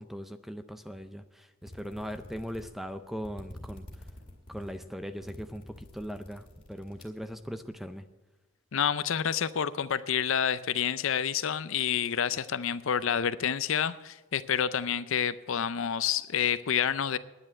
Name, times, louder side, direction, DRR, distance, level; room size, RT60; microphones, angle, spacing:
voice 1, 0.0-3.9 4.5-8.0, equal, ahead, 0.5 m, -39 dB
sound 1, 1.6-7.8, left 1 dB, 25° left, 2.2 m, -48 dB
voice 2, 8.7-17.2, left 8 dB, 60° left, 0.5 m, -28 dB
9.9 x 9.9 x 8.9 m
head